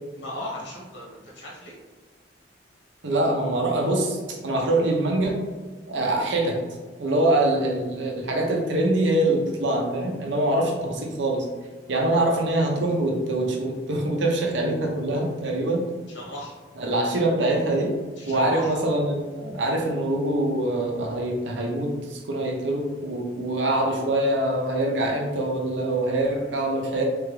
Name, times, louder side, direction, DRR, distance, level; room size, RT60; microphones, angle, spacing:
voice 1, 0.2-1.7 16.1-16.6 18.2-18.7, left 1 dB, 75° left, -5 dB, 1.5 m, -37 dB
voice 2, 3.0-5.4 5.9-6.6 7.0-11.4 11.9-15.8 16.8-17.9 18.3-27.0, right 1 dB, 80° right, 1 dB, 0.8 m, -24 dB
3.7 x 3.5 x 3.3 m, 1.3 s
head